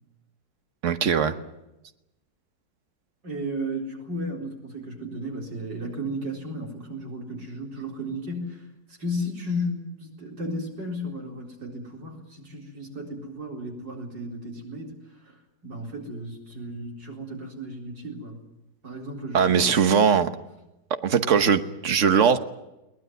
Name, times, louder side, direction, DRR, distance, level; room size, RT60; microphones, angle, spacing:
voice 1, 0.8-1.3 19.3-20.3 21.0-22.4, right 7 dB, 45° right, 9 dB, 1.4 m, -20 dB
voice 2, 3.2-14.9 15.2-15.4 15.6-18.4 18.8-19.7, equal, 90° right, 1 dB, 4.8 m, -34 dB
22.0 x 19.0 x 9.3 m, 0.95 s
omnidirectional pair, 1.9 m